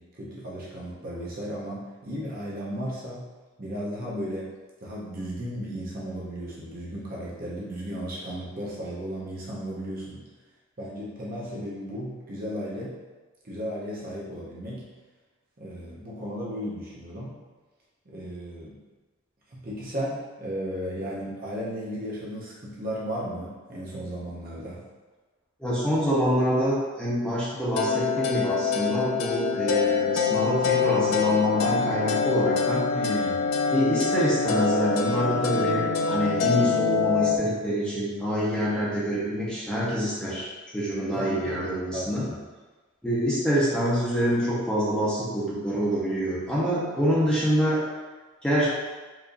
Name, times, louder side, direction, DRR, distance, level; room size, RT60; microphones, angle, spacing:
voice 1, 0.0-3.3 3.6-4.5 4.8-10.3 10.8-13.0 13.4-14.9 15.6-17.4 18.1-18.8 19.5-24.8 32.9-33.5 41.1-41.6 41.9-42.4, equal, 40° right, -6 dB, 0.7 m, -35 dB
voice 2, 25.6-32.8 33.7-40.5 40.7-42.2 43.0-47.8 48.4-48.7, equal, 5° left, -8 dB, 0.8 m, -26 dB
sound 1, 27.8-37.4, left 5 dB, 85° left, 0.4 m, -25 dB
4.7 x 2.6 x 2.6 m, 1.3 s
head